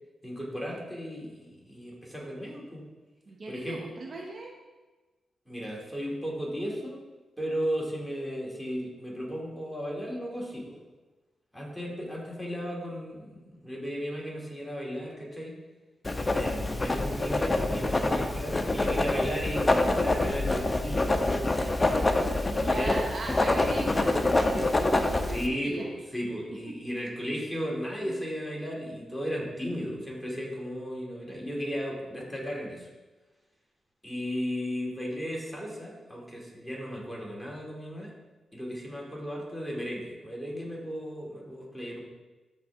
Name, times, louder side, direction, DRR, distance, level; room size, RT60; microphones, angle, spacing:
voice 1, 0.2-2.8 3.5-3.8 5.5-7.0 7.4-10.8 11.5-15.6 16.3-22.9 25.3-32.9 34.0-38.1 38.5-42.1, equal, ahead, -3 dB, 2.7 m, -35 dB
voice 2, 3.3-4.5 22.5-25.9 26.7-26.8 28.0-28.3, right 2 dB, 50° right, 0 dB, 1.0 m, -39 dB
Writing, 16.0-25.5, left 2 dB, 25° left, 0.7 m, -26 dB
13.0 x 4.4 x 3.6 m, 1.2 s
cardioid pair, 70°, 0 cm